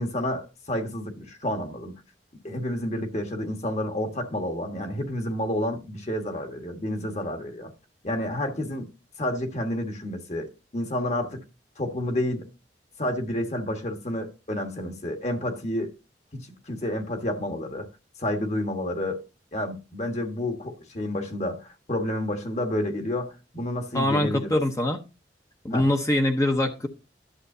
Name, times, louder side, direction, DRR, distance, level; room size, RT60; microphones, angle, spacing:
voice 1, 0.0-1.9 2.4-7.7 8.0-8.9 9.2-11.4 11.8-12.5 13.0-15.9 16.3-17.9 18.2-19.2 19.5-24.6 25.7-25.9, left 1 dB, 40° left, 1.5 m, -30 dB
voice 2, 23.9-25.0 25.6-26.9, left 1 dB, 15° left, 0.8 m, -23 dB
11.5 x 7.6 x 2.7 m
head